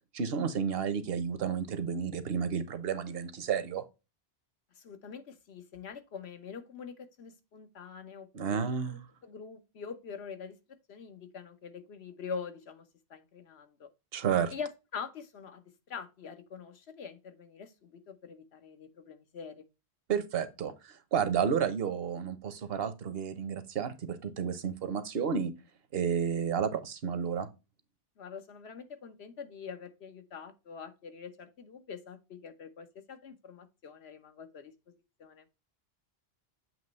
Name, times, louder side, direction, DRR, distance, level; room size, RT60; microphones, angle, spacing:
voice 1, 0.1-3.9 8.3-9.0 14.1-14.5 20.1-25.5 25.9-27.5, right 7 dB, 70° right, 1.0 m, -31 dB
voice 2, 4.8-8.6 8.9-10.6 10.9-13.9 14.5-19.7 28.2-34.7 35.2-35.4, left 6 dB, 90° left, 1.2 m, -44 dB
7.6 x 3.0 x 5.3 m
omnidirectional pair, 1.1 m